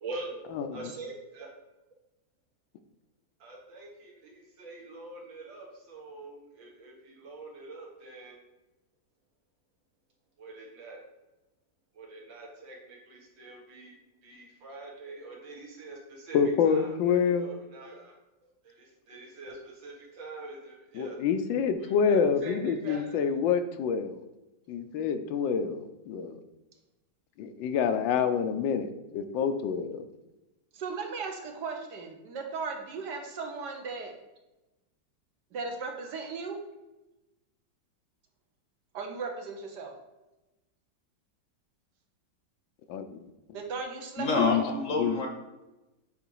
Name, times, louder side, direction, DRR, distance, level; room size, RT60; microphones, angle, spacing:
voice 1, 0.0-1.5 3.4-8.4 10.4-11.0 11.9-14.0 14.2-18.2 18.6-21.2 21.8-22.5 22.8-23.2, right 2 dB, 90° right, -2 dB, 2.2 m, -44 dB
voice 2, 16.3-17.5 20.9-24.2 24.7-26.4 27.4-30.0 42.9-43.3 44.4-44.6 44.9-45.2, left 7 dB, 85° left, 9 dB, 1.4 m, -27 dB
voice 3, 30.7-34.1 35.5-36.6 38.9-39.9 43.5-44.6, right 4 dB, 70° right, 3 dB, 1.4 m, -36 dB
voice 4, 44.2-45.3, left 2 dB, 55° left, 3 dB, 1.0 m, -28 dB
7.9 x 3.3 x 4.7 m, 1.0 s
omnidirectional pair, 2.0 m